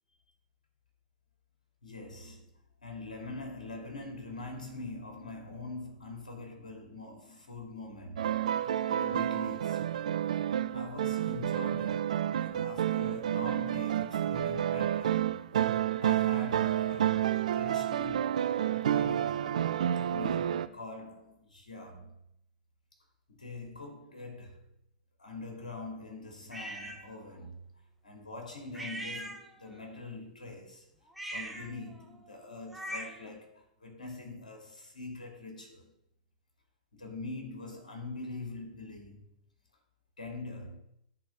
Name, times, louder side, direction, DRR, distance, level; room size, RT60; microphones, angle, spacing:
voice 1, 1.8-2.5 2.8-10.0 10.7-15.4 15.8-18.5 18.9-19.6 20.1-22.2 23.3-24.7 25.2-27.6 28.0-30.9 31.3-35.9 36.9-39.3 40.2-40.8, left 2 dB, 75° left, 2.6 m, -44 dB
sound 1, 8.2-20.7, right 10 dB, 65° right, 0.5 m, -30 dB
sound 2, 26.5-27.0 28.7-29.8 31.1-33.3, right 1 dB, ahead, 1.1 m, -41 dB
8.9 x 4.5 x 6.1 m
figure-of-eight pair, 105°, 4 cm